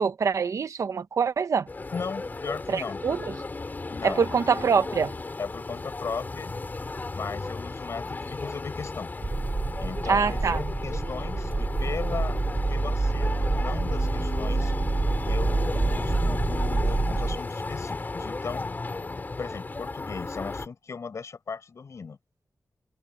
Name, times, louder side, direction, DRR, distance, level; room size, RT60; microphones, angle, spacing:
voice 1, 0.0-1.7 2.7-3.3 4.0-5.1 10.1-10.6, right 6 dB, 70° right, 1.0 m, -25 dB
sound 1, 1.7-20.7, left 3 dB, 35° left, 3.8 m, -34 dB
voice 2, 1.9-3.0 3.9-4.2 4.5-4.6 5.4-6.5 7.1-9.1 9.8-12.4 12.7-14.7 15.3-18.7 19.4-22.2, left 5 dB, 60° left, 5.9 m, -37 dB
sound 2, 9.2-17.4, right 3 dB, 30° right, 4.8 m, -27 dB
wide cardioid pair, 135°, 6 cm